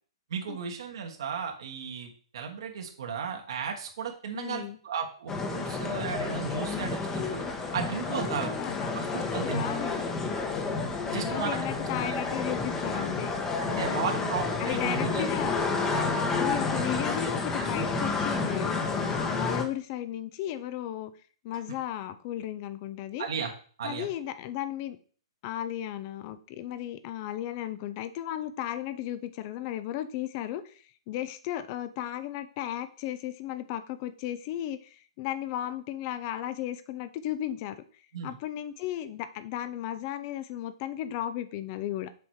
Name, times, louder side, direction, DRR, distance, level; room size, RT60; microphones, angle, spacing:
voice 1, 0.3-7.5 7.7-8.6 8.9-9.8 11.1-11.6 12.0-12.2 13.7-15.2 23.2-23.5 23.8-24.1 38.1-38.4, right 6 dB, 65° right, 2 dB, 1.4 m, -35 dB
voice 2, 4.3-4.8 8.2-8.9 9.5-10.1 11.1-13.3 13.6-14.2 14.6-15.6 16.3-21.1 21.4-23.3 23.8-25.0 25.4-37.8 38.2-42.1, left 12 dB, 40° left, 13 dB, 0.7 m, -35 dB
sound 1, 5.3-19.6, left 4 dB, 15° left, 1.1 m, -30 dB
6.9 x 4.2 x 4.7 m, 0.43 s
hypercardioid pair, 125°, 3 cm